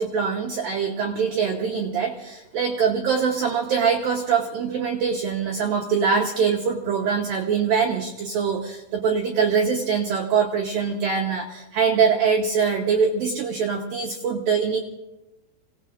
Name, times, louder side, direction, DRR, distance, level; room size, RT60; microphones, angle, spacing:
voice 1, 0.0-14.8, right 6 dB, 90° right, 1 dB, 2.0 m, -23 dB
28.0 x 17.5 x 2.6 m, 1.0 s
omnidirectional pair, 5.7 m